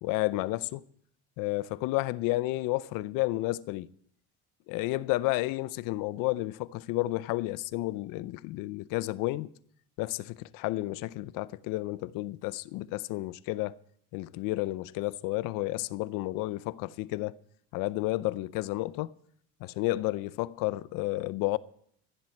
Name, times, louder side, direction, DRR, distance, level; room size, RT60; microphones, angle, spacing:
voice 1, 0.0-0.8 1.4-3.9 4.7-9.5 10.0-13.7 14.1-17.4 17.7-19.1 19.6-21.6, left 18 dB, 80° left, 0.7 m, -31 dB
15.5 x 7.6 x 8.5 m
cardioid pair, 120°, 32 cm